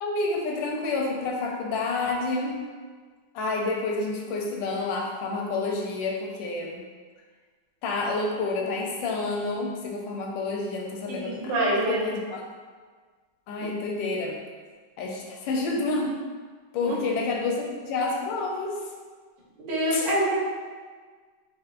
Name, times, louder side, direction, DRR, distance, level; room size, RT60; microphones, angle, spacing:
voice 1, 0.0-2.6 3.3-6.8 7.8-12.4 13.5-14.4 15.0-16.2 16.7-18.8 19.9-20.1, left 3 dB, 85° left, 0 dB, 1.3 m, -29 dB
voice 2, 11.1-12.1 16.8-17.0 19.6-20.4, right 1 dB, 80° right, -6 dB, 1.5 m, -25 dB
4.2 x 2.1 x 2.4 m, 1.5 s
omnidirectional pair, 2.0 m